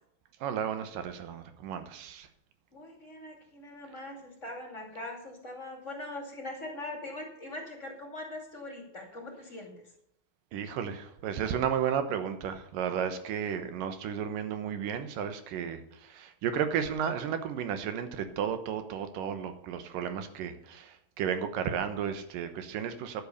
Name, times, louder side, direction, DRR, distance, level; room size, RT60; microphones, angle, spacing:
voice 1, 0.4-2.3 10.5-23.2, right 8 dB, 75° right, 9 dB, 2.6 m, -33 dB
voice 2, 2.7-9.7, left 2 dB, 25° left, 1 dB, 2.2 m, -41 dB
11.5 x 7.9 x 6.6 m, 0.78 s
omnidirectional pair, 4.2 m